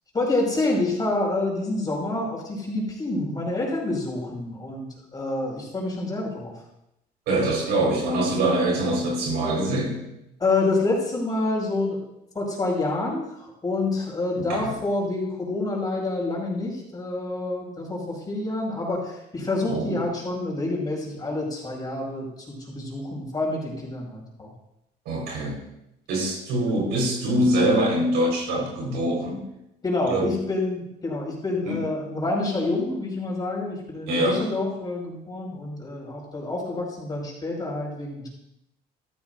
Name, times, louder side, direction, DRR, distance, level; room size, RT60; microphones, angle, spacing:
voice 1, 0.1-6.5 10.4-12.0 12.3-24.5 29.8-38.3, left 2 dB, 25° left, -2 dB, 5.3 m, -27 dB
voice 2, 7.3-10.0 14.3-14.7 19.7-20.0 25.0-25.6 26.1-29.4 30.1-30.3 31.6-31.8 34.1-34.5, right 1 dB, 85° right, 0 dB, 4.6 m, -24 dB
14.0 x 13.5 x 2.7 m, 0.84 s
cardioid pair, 110°, 17 cm